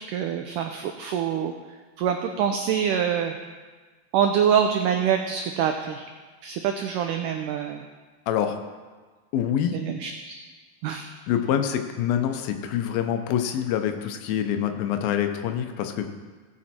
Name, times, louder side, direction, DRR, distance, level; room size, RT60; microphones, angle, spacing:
voice 1, 0.0-1.5 2.0-3.4 4.1-6.0 6.4-7.9 9.7-10.4 10.8-11.1, right 8 dB, 85° right, 5 dB, 1.8 m, -25 dB
voice 2, 8.3-8.6 9.3-9.8 11.3-16.1, left 9 dB, 80° left, 6 dB, 2.5 m, -26 dB
17.5 x 6.1 x 4.3 m, 1.4 s
omnidirectional pair, 4.3 m